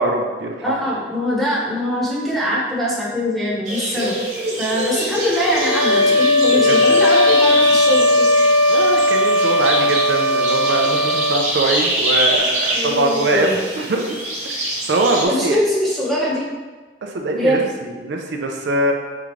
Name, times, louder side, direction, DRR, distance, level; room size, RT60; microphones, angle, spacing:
voice 1, 0.0-0.8 6.6-6.8 8.7-14.0 14.9-15.6 17.0-18.9, right 2 dB, 75° right, 2 dB, 0.5 m, -22 dB
voice 2, 0.6-4.2 4.6-8.3 12.7-13.6 15.3-16.5 17.4-17.7, equal, ahead, -7 dB, 1.0 m, -22 dB
sound 1, 3.6-15.2, right 1 dB, 45° right, 1.2 m, -25 dB
sound 2, 5.4-11.4, left 1 dB, 25° left, 1.0 m, -16 dB
4.5 x 3.7 x 3.1 m, 1.3 s
head